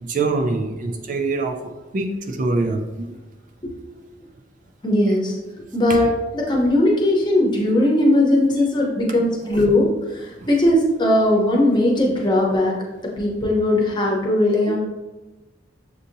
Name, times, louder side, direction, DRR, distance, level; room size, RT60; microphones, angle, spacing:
voice 1, 0.0-3.1 10.4-10.5, right 3 dB, 45° right, 4 dB, 0.3 m, -24 dB
voice 2, 4.8-5.4 5.7-12.8 13.0-14.8, left 1 dB, 25° left, -1 dB, 0.8 m, -19 dB
6.5 x 2.7 x 2.6 m, 1.1 s
head